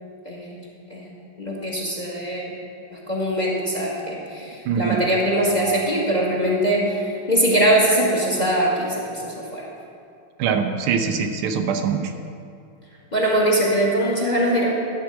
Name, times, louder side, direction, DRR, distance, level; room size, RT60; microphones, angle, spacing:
voice 1, 1.4-2.5 2.9-9.7 13.1-14.7, right 1 dB, 25° left, -3 dB, 1.3 m, -22 dB
voice 2, 4.6-5.0 10.4-12.1, right 6 dB, 90° right, 6 dB, 1.6 m, -23 dB
11.5 x 4.7 x 7.5 m, 2.5 s
omnidirectional pair, 2.3 m